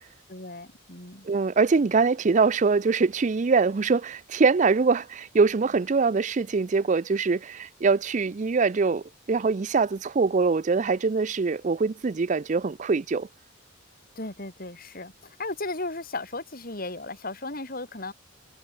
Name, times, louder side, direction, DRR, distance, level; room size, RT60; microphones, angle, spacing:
voice 1, 0.3-1.3 14.1-18.1, left 2 dB, 45° left, 4.9 m, -35 dB
voice 2, 1.2-13.3, right 4 dB, 35° right, 0.4 m, -23 dB
head